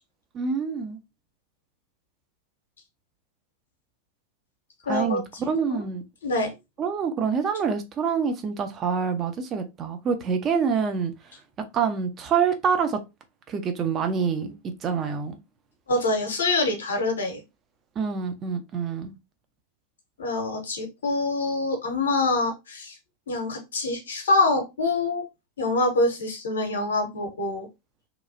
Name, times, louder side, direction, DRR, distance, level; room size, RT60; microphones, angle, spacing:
voice 1, 0.3-1.0 4.9-6.0 6.8-11.1 11.7-13.0 13.5-14.6 14.8-15.4 18.0-19.1, right 6 dB, 30° right, 0.5 m, -26 dB
voice 2, 4.8-5.2 5.7-5.8 6.2-6.5 15.9-17.4 20.2-23.0 23.3-25.3 25.6-27.7, left 2 dB, 65° left, 0.8 m, -25 dB
2.9 x 2.3 x 2.6 m
figure-of-eight pair, 90°, 0 cm